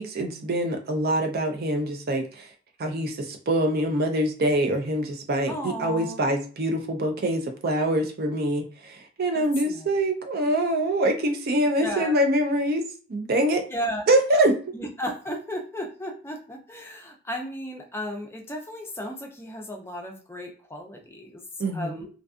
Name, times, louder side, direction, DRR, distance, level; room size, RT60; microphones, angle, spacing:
voice 1, 0.0-2.5 2.8-12.8 13.1-13.6 14.1-14.6 21.6-22.0, right 1 dB, 50° right, 4 dB, 0.5 m, -24 dB
voice 2, 5.5-6.2 9.3-9.9 11.8-12.1 13.7-14.0 14.7-21.4 21.7-22.1, equal, 10° left, 2 dB, 0.5 m, -34 dB
2.5 x 2.4 x 2.4 m, 0.39 s
head